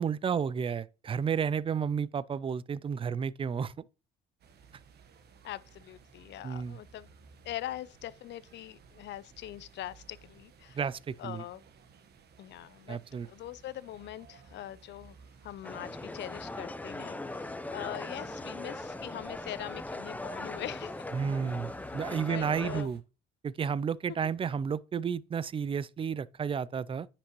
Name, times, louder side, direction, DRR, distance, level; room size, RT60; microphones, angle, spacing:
voice 1, 0.0-3.7 6.4-6.8 10.7-11.4 12.9-13.3 21.1-23.0 23.4-27.1, right 7 dB, 25° right, 0.4 m, -32 dB
sound 1, 4.4-23.0, right 5 dB, 55° right, 1.3 m, -58 dB
voice 2, 5.4-7.1 7.4-10.8 11.2-11.6 12.4-13.0 13.3-15.2 15.4-21.0 21.9-22.0 22.3-22.9, left 13 dB, 60° left, 0.6 m, -42 dB
sound 2, 15.6-22.8, left 2 dB, 10° left, 0.7 m, -40 dB
9.7 x 5.9 x 3.1 m
cardioid pair, 105°, 21 cm